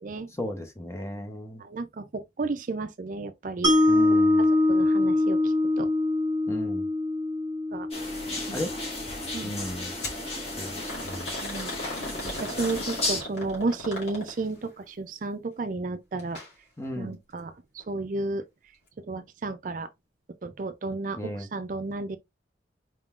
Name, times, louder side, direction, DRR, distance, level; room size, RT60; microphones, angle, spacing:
voice 1, 0.4-1.6 3.9-4.4 6.5-6.9 8.5-8.7 9.4-9.9 10.6-11.3 16.8-17.2 21.2-21.5, left 1 dB, 15° left, 0.7 m, -35 dB
voice 2, 1.6-3.7 4.4-5.9 7.7-7.9 8.5-8.6 9.3-9.6 11.4-11.7 12.1-16.4 17.0-18.4 19.1-19.9 20.4-22.2, right 3 dB, 50° right, 0.4 m, -33 dB
Mallet percussion, 3.6-9.8, left 2 dB, 20° right, 1.0 m, -24 dB
sound 1, 7.9-13.2, left 2 dB, 35° left, 1.5 m, -34 dB
sound 2, 10.0-10.2 10.9-14.6 16.2-16.5 16.8-16.9 17.8-17.9, left 1 dB, 75° left, 2.3 m, -37 dB
4.3 x 3.7 x 2.4 m
head